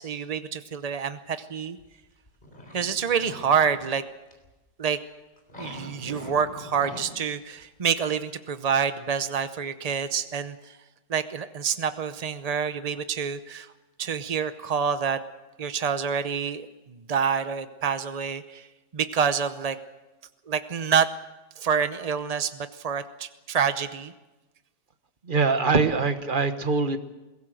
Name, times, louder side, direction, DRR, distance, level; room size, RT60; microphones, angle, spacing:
voice 1, 0.0-1.8 2.7-4.0 4.8-5.0 5.6-10.8 11.1-13.7 14.0-15.2 15.6-18.7 18.9-19.8 20.5-21.1 21.6-24.1, right 7 dB, 80° right, 11 dB, 0.3 m, -27 dB
sound 1, 1.8-3.9 4.3-4.5 5.4-7.3 7.6-7.7, equal, 25° left, 3.7 m, -43 dB
voice 2, 25.3-27.0, right 4 dB, 35° right, 9 dB, 1.1 m, -23 dB
22.0 x 17.5 x 7.8 m, 1.1 s
omnidirectional pair, 1.9 m